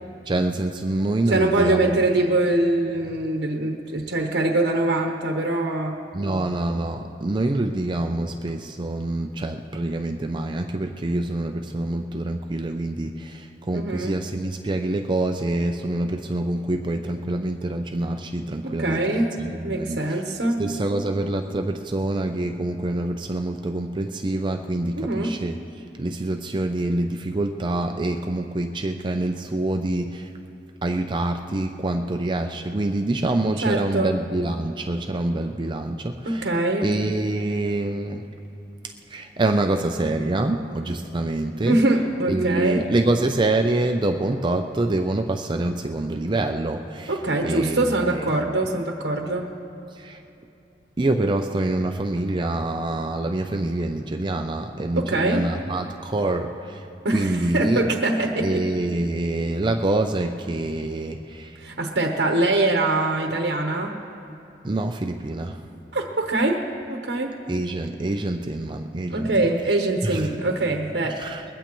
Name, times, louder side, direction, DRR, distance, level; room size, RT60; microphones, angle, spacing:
voice 1, 0.3-2.0 4.0-4.1 6.1-20.2 20.6-25.6 26.0-30.3 30.8-36.6 36.8-38.3 38.8-41.8 42.3-48.3 49.9-50.2 51.0-56.9 57.1-57.9 58.4-61.6 64.6-65.6 67.5-70.3 71.2-71.4, right 2 dB, 25° right, 5 dB, 0.5 m, -26 dB
voice 2, 1.3-6.0 13.7-14.1 18.6-19.4 19.6-20.6 25.0-25.4 33.6-34.1 36.2-36.9 41.7-42.9 47.1-49.5 55.0-55.5 57.0-58.6 61.6-64.0 65.9-66.6 66.9-67.4 69.1-71.2, right 2 dB, 70° right, 2 dB, 1.0 m, -23 dB
21.0 x 16.0 x 3.0 m, 2.9 s
head